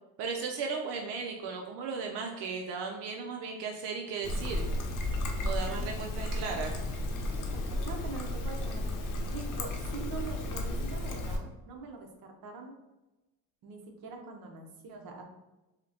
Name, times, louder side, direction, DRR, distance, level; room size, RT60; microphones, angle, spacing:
voice 1, 0.2-4.7 5.4-6.8, right 5 dB, 90° right, 2 dB, 0.6 m, -36 dB
Trickle dribble, 4.2-11.4, left 1 dB, 55° left, 0.7 m, -33 dB
voice 2, 5.3-5.9 7.4-9.0 9.3-12.7 13.6-15.2, right 4 dB, 60° right, 2 dB, 0.9 m, -44 dB
5.0 x 2.1 x 2.9 m, 1.0 s
cardioid pair, 125°, 40 cm